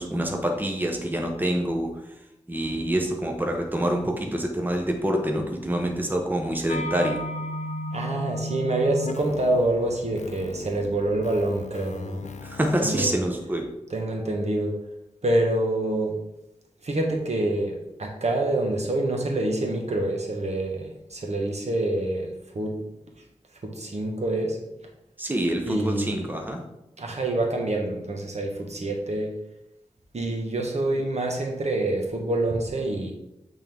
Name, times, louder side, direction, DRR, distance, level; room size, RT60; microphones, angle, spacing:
voice 1, 0.0-1.9 2.5-7.2 12.4-13.7 25.2-26.6, right 1 dB, 15° right, 3 dB, 0.8 m, -26 dB
sound 1, 6.7-13.1, left 1 dB, 80° left, 0.5 m, -35 dB
voice 2, 7.9-12.3 12.8-13.1 13.9-14.8 15.2-16.2 16.8-22.9 23.6-24.6 25.7-26.3 27.0-29.4 30.1-33.1, right 1 dB, 70° right, 1 dB, 1.1 m, -26 dB
7.6 x 3.7 x 3.5 m, 0.88 s
wide cardioid pair, 75°, 12 cm